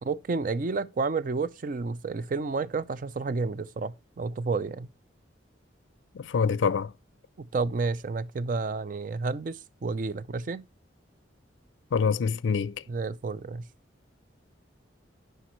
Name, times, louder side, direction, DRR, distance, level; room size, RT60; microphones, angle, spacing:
voice 1, 0.0-4.9 7.4-10.6 12.9-13.6, right 4 dB, 45° right, 0.4 m, -30 dB
voice 2, 6.1-6.9 11.9-12.8, left 6 dB, 70° left, 0.4 m, -26 dB
10.0 x 5.1 x 3.0 m
head